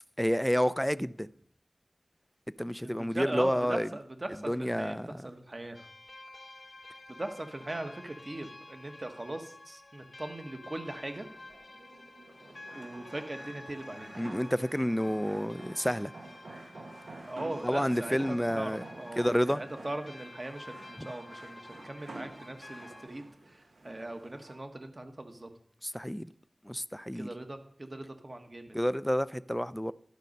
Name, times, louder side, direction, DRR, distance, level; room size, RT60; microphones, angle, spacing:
voice 1, 0.2-1.3 2.6-3.9 4.5-5.3 14.2-16.1 17.6-18.8 19.2-19.6 21.0-21.1 25.8-26.3 26.6-27.3 28.7-29.9, equal, 5° left, 0.3 m, -29 dB
voice 2, 2.8-5.8 7.2-11.3 12.7-14.1 17.3-19.2 19.5-25.5 27.1-28.8, right 1 dB, 40° right, 1.1 m, -40 dB
sound 1, 5.7-23.1, left 2 dB, 45° left, 0.8 m, -51 dB
sound 2, 10.9-24.6, right 2 dB, 85° right, 1.2 m, -49 dB
11.5 x 5.3 x 5.2 m
wide cardioid pair, 55°, 0 cm